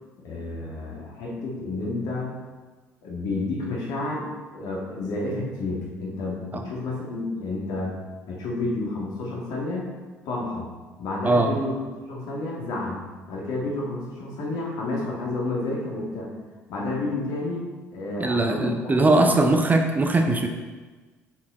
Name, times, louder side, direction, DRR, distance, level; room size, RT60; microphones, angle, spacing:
voice 1, 0.2-2.4 3.0-7.9 8.3-9.9 10.3-10.7 11.0-11.8 12.1-13.0 13.3-16.3 16.7-17.7 17.9-19.6, left 2 dB, 60° left, -3 dB, 2.0 m, -30 dB
voice 2, 11.2-11.6 18.2-20.5, right 2 dB, 20° right, 4 dB, 0.8 m, -20 dB
7.0 x 4.8 x 4.4 m, 1.3 s
figure-of-eight pair, 50°, 8 cm